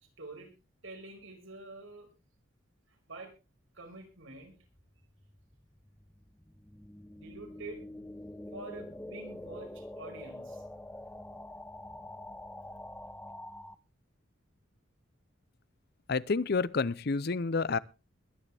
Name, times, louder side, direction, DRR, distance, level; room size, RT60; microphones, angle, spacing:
voice 1, 0.2-0.5 0.8-2.1 2.9-3.3 3.7-4.5 7.1-7.8 8.5-10.6, right 2 dB, 85° right, 5.4 m, -47 dB
sound 1, 4.5-13.8, left 1 dB, 10° left, 0.7 m, -46 dB
voice 2, 16.1-17.8, left 4 dB, 50° left, 0.6 m, -29 dB
21.5 x 9.8 x 3.4 m
head